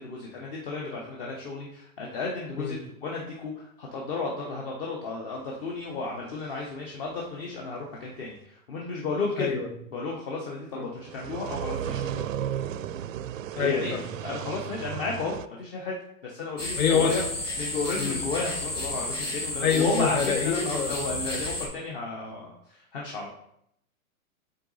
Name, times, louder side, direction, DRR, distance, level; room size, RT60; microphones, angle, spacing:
voice 1, 0.0-9.5 9.9-12.3 13.5-16.0 16.2-17.2 17.6-23.3, left 3 dB, 40° left, -1 dB, 1.0 m, -33 dB
sound 1, 11.0-15.5, right 10 dB, 65° right, 0.5 m, -34 dB
voice 2, 13.6-14.0 16.8-17.2 18.0-18.2 19.6-20.9, left 6 dB, 70° left, 5 dB, 1.4 m, -25 dB
sound 2, 16.6-21.7, left 2 dB, 10° left, 1.0 m, -32 dB
7.9 x 4.0 x 4.0 m, 0.74 s
hypercardioid pair, 170°, 44 cm